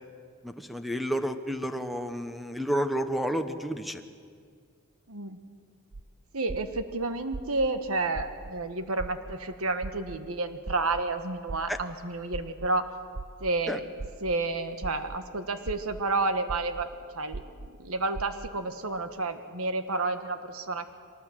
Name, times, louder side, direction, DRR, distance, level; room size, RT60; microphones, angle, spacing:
voice 1, 0.4-4.0 11.7-11.8 13.7-13.8, equal, ahead, 8 dB, 1.0 m, -30 dB
voice 2, 5.1-5.4 6.3-12.8 13.4-13.8 14.2-16.9 17.1-20.9, right 3 dB, 75° right, 9 dB, 1.4 m, -30 dB
sound 1, 5.9-6.0 6.5-6.8 7.3-7.7 8.1-8.5 9.0-9.3 9.8-10.2 10.7-11.0 11.5-11.8 12.3-12.7 13.1-13.5 14.0-14.3 14.8-15.2 15.7-16.0 16.5-16.8 17.3-17.7 18.1-18.5, right 3 dB, 30° right, 0.5 m, -38 dB
24.0 x 19.0 x 7.5 m, 2.1 s
head